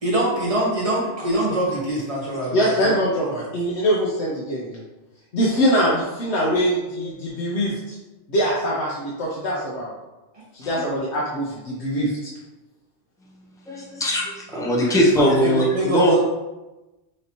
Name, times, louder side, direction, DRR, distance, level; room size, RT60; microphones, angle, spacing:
voice 1, 0.0-3.3 14.7-16.2, right 1 dB, 30° right, -5 dB, 1.3 m, -24 dB
voice 2, 2.5-4.8 5.3-7.9 8.3-9.9 10.5-12.3, equal, 70° left, -5 dB, 1.1 m, -23 dB
voice 3, 13.7-16.2, equal, 5° left, -2 dB, 0.5 m, -20 dB
6.2 x 2.9 x 2.9 m, 1.0 s
omnidirectional pair, 1.2 m